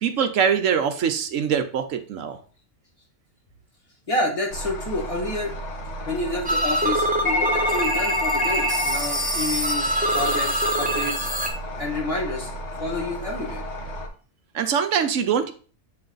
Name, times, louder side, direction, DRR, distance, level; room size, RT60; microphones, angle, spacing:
voice 1, 0.0-2.4 14.5-15.5, right 7 dB, 70° right, 8 dB, 1.0 m, -23 dB
voice 2, 4.1-5.5 6.1-11.3 11.8-12.5 12.8-13.6, left 2 dB, 25° left, 0 dB, 1.4 m, -29 dB
sound 1, 4.5-14.1, equal, 55° left, 1.1 m, -34 dB
sound 2, 6.4-11.5, equal, 5° right, 0.8 m, -23 dB
7.8 x 3.3 x 3.8 m, 0.39 s
omnidirectional pair, 1.5 m